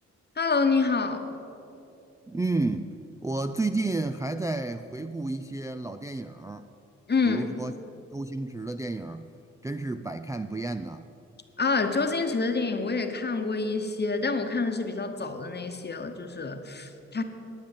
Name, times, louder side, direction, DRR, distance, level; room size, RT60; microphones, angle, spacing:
voice 1, 0.4-1.3 7.1-7.5 11.6-17.2, left 4 dB, 35° left, 7 dB, 1.1 m, -27 dB
voice 2, 2.3-2.9 3.2-6.7 7.2-7.7 8.1-9.3 9.6-11.1, right 2 dB, 10° right, 7 dB, 0.4 m, -31 dB
10.5 x 8.8 x 7.3 m, 2.8 s
cardioid pair, 75°, 29 cm